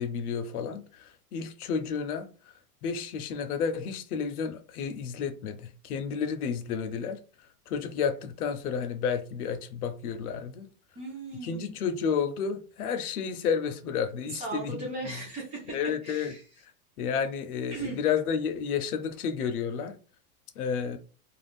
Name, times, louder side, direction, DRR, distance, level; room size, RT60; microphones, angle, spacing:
voice 1, 0.0-2.5 2.8-7.2 7.7-10.7 11.4-15.1 15.7-16.3 17.0-20.0 20.6-21.0, left 6 dB, 85° left, 0.7 m, -31 dB
voice 2, 11.0-11.7 14.3-16.6 17.7-18.0, right 2 dB, 15° right, 0.4 m, -38 dB
2.5 x 2.4 x 3.4 m
supercardioid pair, 155°, 43 cm